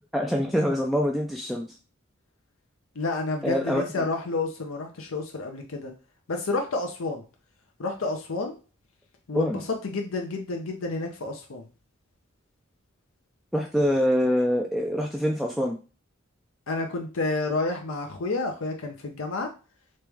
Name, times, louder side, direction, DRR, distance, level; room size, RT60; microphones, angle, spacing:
voice 1, 0.1-1.7 3.4-3.8 9.3-9.6 13.5-15.8, equal, ahead, 0 dB, 0.3 m, -25 dB
voice 2, 3.0-5.9 6.3-7.2 7.8-8.6 9.3-11.7 16.7-19.5, left 3 dB, 85° left, 3 dB, 0.7 m, -30 dB
3.2 x 3.0 x 3.4 m, 0.32 s
head